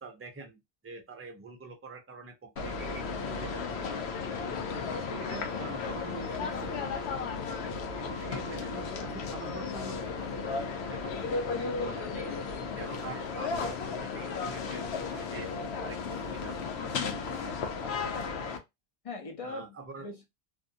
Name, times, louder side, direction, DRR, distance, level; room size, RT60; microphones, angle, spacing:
voice 1, 0.0-3.9 4.3-4.4 4.7-7.3 8.0-15.5 15.8-16.7 17.4-17.5 19.4-20.1, right 4 dB, 15° right, 0.5 m, -46 dB
sound 1, 2.6-18.6, left 5 dB, 80° left, 0.9 m, -34 dB
voice 2, 17.8-18.4 19.0-20.3, left 2 dB, 35° left, 0.7 m, -42 dB
2.6 x 2.5 x 2.5 m
omnidirectional pair, 1.1 m